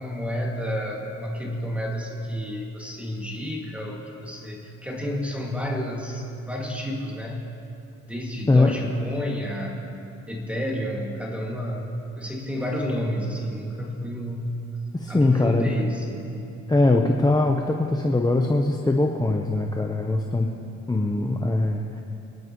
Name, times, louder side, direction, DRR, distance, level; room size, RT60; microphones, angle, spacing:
voice 1, 0.0-7.5 8.1-9.8 10.3-14.6 15.1-16.4, equal, 5° right, -2 dB, 2.3 m, -30 dB
voice 2, 14.9-15.7 16.7-20.5 20.9-22.0, left 2 dB, 15° left, 2 dB, 0.9 m, -21 dB
26.0 x 10.5 x 3.1 m, 2.8 s
cardioid pair, 90°, 30 cm